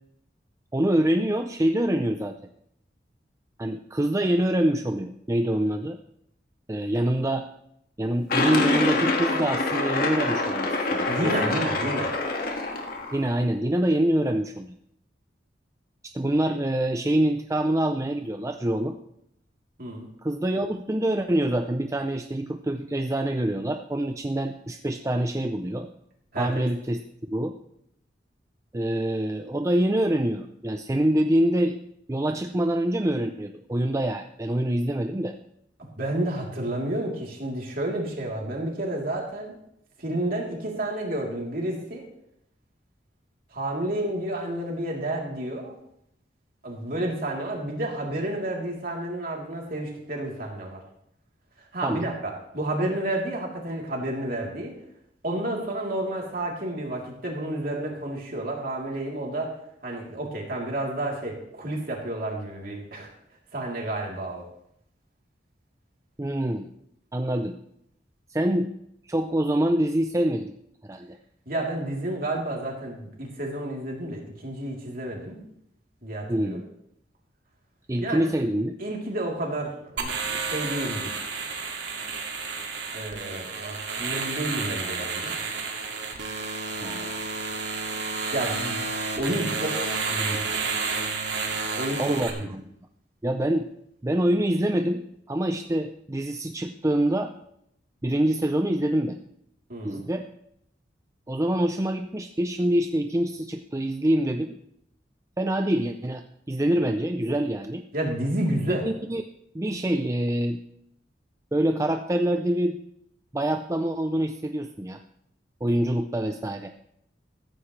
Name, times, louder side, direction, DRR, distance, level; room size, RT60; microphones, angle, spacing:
voice 1, 0.7-2.4 3.6-6.0 6.7-7.5 8.0-11.6 13.1-14.7 16.0-19.0 20.2-25.9 26.4-27.0 27.3-27.5 28.7-31.8 32.1-35.3 51.8-52.1 66.2-66.7 67.1-67.6 68.3-68.7 69.1-70.5 70.8-71.2 76.3-76.6 77.9-78.8 86.8-87.3 92.0-92.3 93.2-93.7 94.0-97.3 98.0-99.2 99.8-100.2 101.3-104.6 105.4-107.8 108.7-109.2 109.5-110.6 111.5-112.8 113.3-115.0 115.6-116.7, right 1 dB, 15° right, 6 dB, 0.5 m, -25 dB
sound 1, 8.3-13.3, left 2 dB, 55° left, 1.9 m, -26 dB
voice 2, 11.1-12.1 19.8-20.1 26.3-26.5 36.0-39.6 40.0-42.0 43.5-45.7 46.6-50.8 51.7-54.7 55.2-59.6 59.8-63.1 63.5-64.4 71.4-75.4 76.0-76.6 78.0-78.2 78.8-81.1 82.9-85.3 88.3-88.8 89.2-89.8 90.1-90.4 91.7-92.5 99.7-100.0 107.9-108.8, right 1 dB, 50° right, -1 dB, 3.4 m, -30 dB
sound 2, 80.0-92.3, right 4 dB, 75° right, 2.2 m, -31 dB
14.5 x 14.5 x 3.3 m, 0.76 s
head